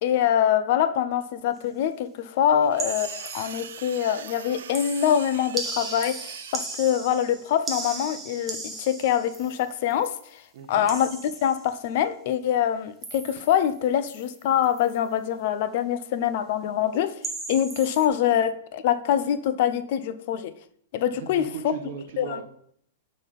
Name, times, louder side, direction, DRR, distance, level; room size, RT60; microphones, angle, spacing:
voice 1, 0.0-10.4 10.7-17.1 17.5-20.5 20.9-21.7 22.2-22.4, left 9 dB, 50° left, 0.4 m, -24 dB
sound 1, 2.6-6.9, right 9 dB, 80° right, 0.4 m, -42 dB
sound 2, 2.8-4.0 4.3-10.2 10.9-11.8 13.0-13.7 14.1-14.4 14.6-14.9 17.2-18.1, right 3 dB, 5° right, 0.8 m, -37 dB
voice 2, 10.5-10.9 21.1-22.4, right 7 dB, 55° right, 1.2 m, -38 dB
5.8 x 4.1 x 5.3 m
supercardioid pair, 165°, 0 cm